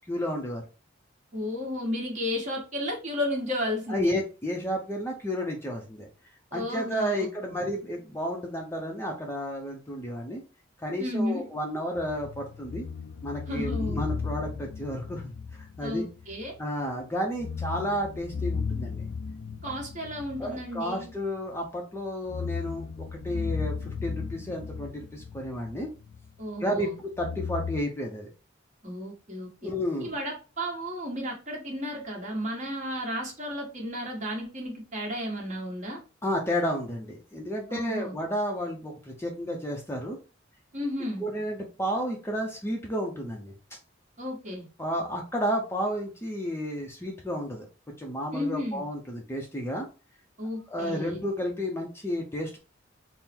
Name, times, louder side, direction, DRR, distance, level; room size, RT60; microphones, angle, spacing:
voice 1, 0.1-0.6 3.9-6.1 6.5-10.4 10.8-12.8 13.2-16.1 16.6-19.0 20.4-25.9 26.6-28.3 29.6-30.1 36.2-40.2 41.2-43.5 44.8-47.7 48.0-49.9 50.7-52.6, equal, 15° left, 1 dB, 0.6 m, -32 dB
voice 2, 1.3-4.2 6.5-7.6 11.0-11.5 13.5-14.0 15.8-16.5 19.6-21.1 26.4-27.0 28.8-29.7 30.0-36.0 37.7-38.1 40.7-41.3 44.2-44.7 48.3-48.8 50.4-51.2, left 1 dB, 40° right, -1 dB, 1.3 m, -33 dB
sound 1, 12.0-16.6 16.9-17.0 17.3-21.6 22.1-26.4 27.2-27.8, left 5 dB, 80° left, 0.4 m, -35 dB
3.6 x 2.1 x 4.3 m, 0.33 s
head